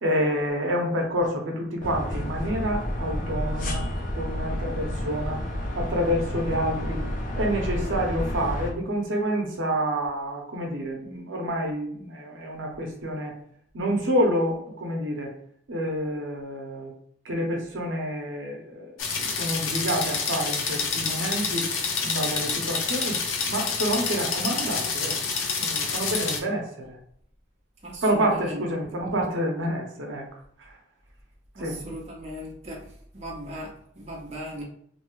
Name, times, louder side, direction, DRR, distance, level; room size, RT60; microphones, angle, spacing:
voice 1, 0.0-5.4 5.7-7.0 7.3-13.3 13.7-15.3 15.7-16.9 17.2-21.7 22.0-23.2 23.5-25.2 25.6-27.0 28.0-30.3 30.6-30.8 31.6-31.9, equal, 70° right, 1 dB, 0.7 m, -28 dB
sound 1, 1.8-8.7, left 1 dB, 40° left, 0.5 m, -30 dB
sound 2, 19.0-26.4, left 5 dB, 90° left, 0.5 m, -28 dB
voice 2, 27.8-29.0 31.6-32.9 33.1-34.6, right 1 dB, 35° right, -3 dB, 0.6 m, -38 dB
2.6 x 2.3 x 3.0 m, 0.66 s
head